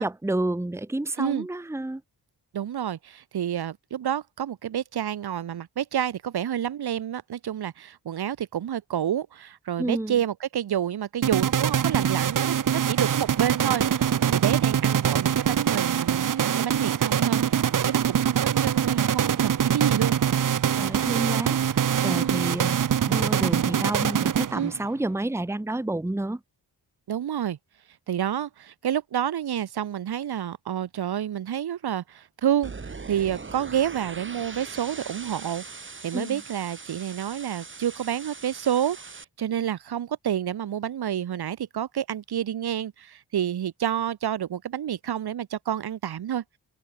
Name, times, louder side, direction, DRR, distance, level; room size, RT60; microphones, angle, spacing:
voice 1, 0.0-2.0 9.8-10.2 20.8-26.4 36.1-36.4, right 2 dB, 5° right, 1.2 m, -30 dB
voice 2, 2.5-17.4 17.8-20.2 22.1-22.4 24.5-24.7 27.1-27.6 28.1-46.4, right 10 dB, 75° right, 2.1 m, -29 dB
sound 1, 11.2-24.9, right 9 dB, 55° right, 1.1 m, -24 dB
sound 2, 32.6-39.2, right 4 dB, 30° right, 2.7 m, -41 dB
open air
cardioid pair, 85°, 39 cm